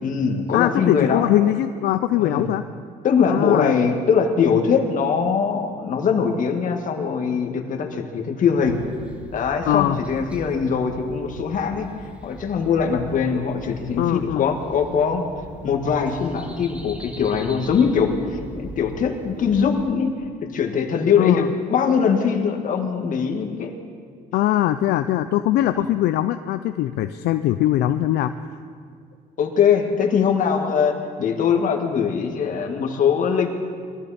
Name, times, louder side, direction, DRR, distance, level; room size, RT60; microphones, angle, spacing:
voice 1, 0.0-1.3 2.2-2.5 3.0-8.8 9.3-11.9 12.2-15.2 15.6-23.7 25.8-25.9 29.4-33.5, left 6 dB, 50° left, 3 dB, 1.9 m, -22 dB
voice 2, 0.5-2.6 3.3-3.7 9.7-10.0 14.0-14.4 21.2-21.5 24.3-28.3, left 13 dB, 75° left, 10 dB, 0.5 m, -21 dB
sound 1, 8.6-19.9, equal, 5° right, 1.6 m, -40 dB
22.0 x 13.5 x 4.3 m, 2.1 s
cardioid pair, 110°, 17 cm